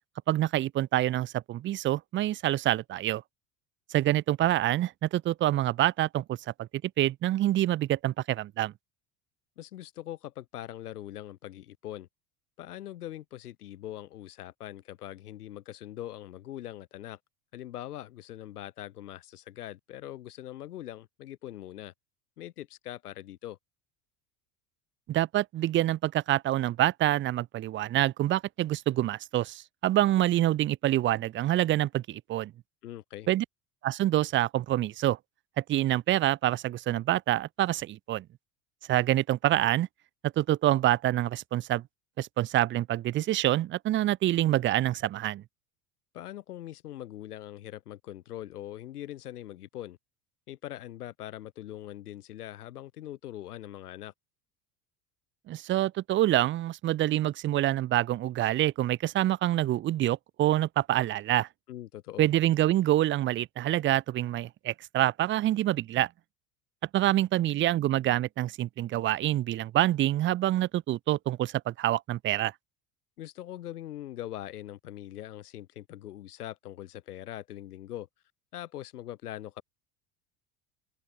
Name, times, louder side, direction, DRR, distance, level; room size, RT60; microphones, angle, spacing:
voice 1, 0.3-3.2 3.9-6.7 7.0-8.7 25.1-32.5 33.3-33.4 33.8-35.2 35.6-38.2 38.9-39.9 40.2-41.8 42.2-45.4 55.5-61.5 62.2-66.1 66.9-72.5, right 14 dB, 30° right, 0.4 m, -26 dB
voice 2, 9.6-12.1 12.6-17.2 17.5-21.9 22.4-23.6 32.8-33.3 46.1-50.0 50.5-54.1 61.7-62.3 73.2-78.1 78.5-79.6, left 13 dB, 85° left, 2.3 m, -42 dB
hypercardioid pair, 80°, 45 cm